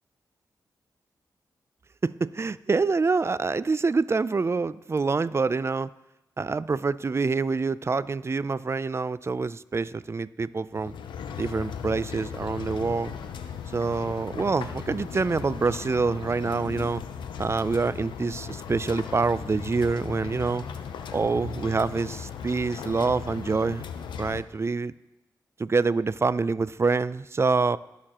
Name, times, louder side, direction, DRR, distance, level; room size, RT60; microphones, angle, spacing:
voice 1, 2.0-5.9 6.4-10.9 11.4-13.2 13.7-17.0 17.4-20.7 21.1-23.8 24.2-24.9 25.6-27.8, right 4 dB, 35° right, 17 dB, 0.4 m, -26 dB
sound 1, 10.7-24.4, left 7 dB, 90° left, 0.6 m, -37 dB
17.5 x 6.7 x 3.0 m, 0.95 s
cardioid pair, 50°, 8 cm